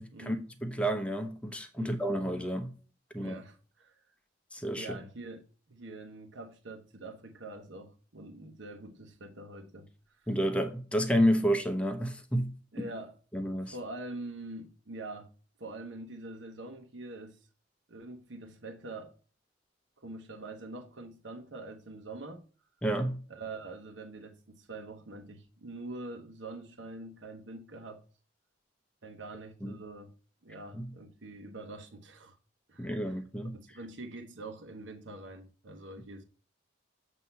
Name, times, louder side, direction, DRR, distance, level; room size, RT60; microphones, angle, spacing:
voice 1, 0.0-2.7 3.1-3.4 4.5-4.9 10.3-12.5 13.3-13.7 22.8-23.2 29.6-29.7 30.8-30.9 32.8-33.6, equal, 5° left, 0.9 m, -30 dB
voice 2, 3.1-4.0 4.7-9.9 10.2-10.3 12.7-13.2 13.6-15.3 15.6-17.4 17.9-19.1 20.0-22.4 23.3-28.0 29.0-30.1 30.4-32.4 32.7-33.2 33.5-36.2, right 2 dB, 70° right, 1.1 m, -44 dB
8.0 x 2.9 x 5.5 m
head